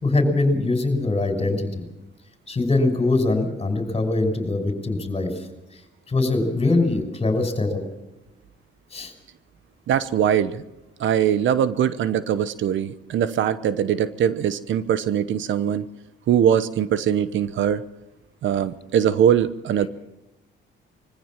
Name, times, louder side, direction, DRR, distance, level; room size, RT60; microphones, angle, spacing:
voice 1, 0.0-1.8 2.5-5.3 6.1-7.8 8.9-9.1, left 2 dB, 30° left, 6 dB, 5.4 m, -22 dB
voice 2, 9.9-10.6 11.0-15.9 16.3-17.8 18.4-19.9, right 9 dB, 70° right, 14 dB, 1.1 m, -21 dB
22.5 x 15.5 x 7.5 m, 0.99 s
cardioid pair, 90°, 20 cm